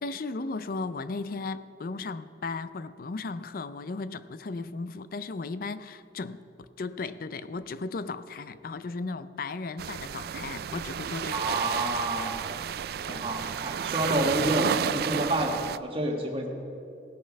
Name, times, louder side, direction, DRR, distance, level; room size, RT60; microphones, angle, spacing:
voice 1, 0.0-11.4 13.1-13.3, left 3 dB, 55° left, 0.4 m, -36 dB
sound 1, 9.8-15.8, right 8 dB, 60° right, 0.3 m, -32 dB
voice 2, 11.3-12.7 13.1-16.5, right 1 dB, 30° right, 1.5 m, -29 dB
17.5 x 6.8 x 5.3 m
head